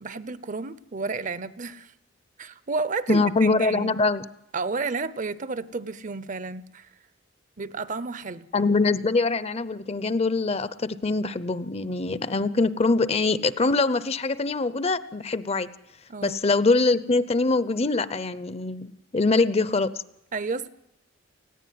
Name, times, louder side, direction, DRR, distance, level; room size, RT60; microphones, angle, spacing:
voice 1, 0.0-1.9 2.4-3.9 4.5-6.9 7.6-8.5 16.1-16.4 20.3-20.7, right 4 dB, 40° right, 16 dB, 0.7 m, -31 dB
voice 2, 3.1-4.2 8.5-15.7 16.2-19.9, left 3 dB, 30° left, 16 dB, 0.7 m, -23 dB
19.5 x 15.0 x 9.4 m, 0.83 s
head